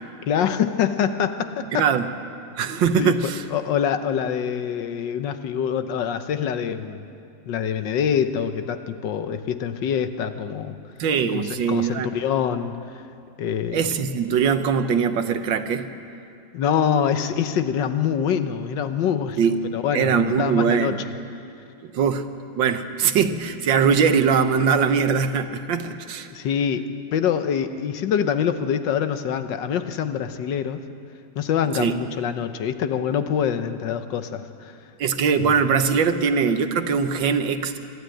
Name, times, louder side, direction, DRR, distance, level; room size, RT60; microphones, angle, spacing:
voice 1, 0.3-1.9 3.0-7.0 7.5-10.8 11.3-13.0 13.4-13.9 16.5-19.4 19.7-21.0 26.3-30.9 31.3-34.7 35.4-35.5, left 8 dB, 75° left, 9 dB, 1.5 m, -25 dB
voice 2, 1.7-2.1 2.6-3.4 11.0-12.1 13.7-15.9 19.4-19.6 19.9-21.0 21.9-22.3 22.5-26.3 31.7-31.9 35.0-37.8, right 6 dB, 80° right, 9 dB, 1.7 m, -21 dB
25.0 x 12.5 x 9.0 m, 2.5 s
omnidirectional pair, 2.0 m